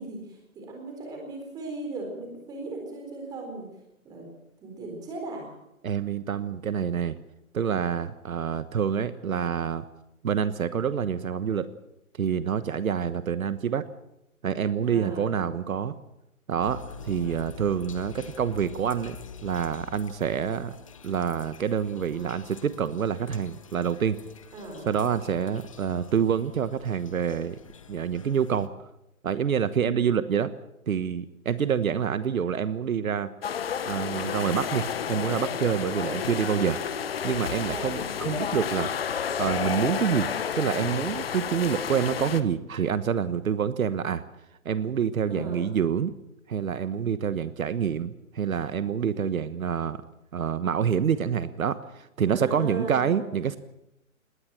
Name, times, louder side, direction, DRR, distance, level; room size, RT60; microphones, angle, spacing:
voice 1, 0.0-3.6 4.0-4.3 4.6-5.5 14.8-15.4 24.5-24.9 29.8-29.9 37.6-38.0 45.3-45.7 52.3-53.3, right 2 dB, 10° right, 2 dB, 4.2 m, -37 dB
voice 2, 5.8-7.2 7.5-9.8 10.2-11.7 12.2-13.8 14.4-15.9 16.5-16.8 17.0-19.2 19.4-20.7 21.0-24.2 24.9-27.6 27.9-28.7 29.2-30.5 30.9-33.3 33.8-36.8 37.2-38.9 39.4-40.3 40.5-44.2 44.6-46.1 46.5-50.0 50.3-53.6, right 7 dB, 75° right, 13 dB, 1.3 m, -27 dB
sound 1, 16.6-28.7, left 6 dB, 25° left, 0.8 m, -47 dB
sound 2, 33.4-42.4, left 7 dB, 45° left, 1.2 m, -31 dB
19.5 x 18.5 x 7.6 m, 0.86 s
hypercardioid pair, 175°, 42 cm